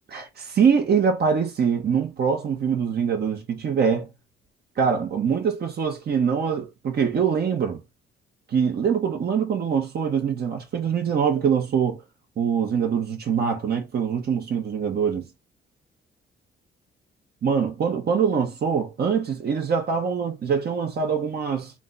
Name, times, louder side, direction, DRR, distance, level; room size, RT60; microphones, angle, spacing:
voice 1, 0.1-4.1 4.8-7.8 8.5-12.0 12.4-15.2 17.4-21.7, right 6 dB, 55° right, 1.2 m, -23 dB
3.7 x 2.6 x 3.9 m
cardioid pair, 90°, 20 cm